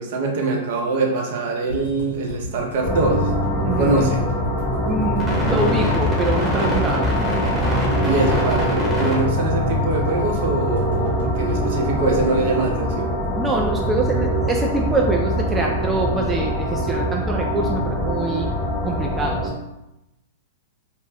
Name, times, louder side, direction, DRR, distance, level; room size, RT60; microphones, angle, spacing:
voice 1, 0.0-3.3 3.8-4.2 8.1-13.1, right 3 dB, 60° right, 1 dB, 0.6 m, -23 dB
sound 1, 1.7-13.8 14.1-14.2 14.4-14.5, left 1 dB, 85° left, 0.8 m, -33 dB
sound 2, 2.8-19.5, equal, 5° left, 0.9 m, -23 dB
voice 2, 3.6-4.1 4.8-7.1 13.3-18.5 18.8-19.5, right 2 dB, 15° right, 0 dB, 0.3 m, -24 dB
2.5 x 2.1 x 3.2 m, 0.92 s
hypercardioid pair, 110°, 0 cm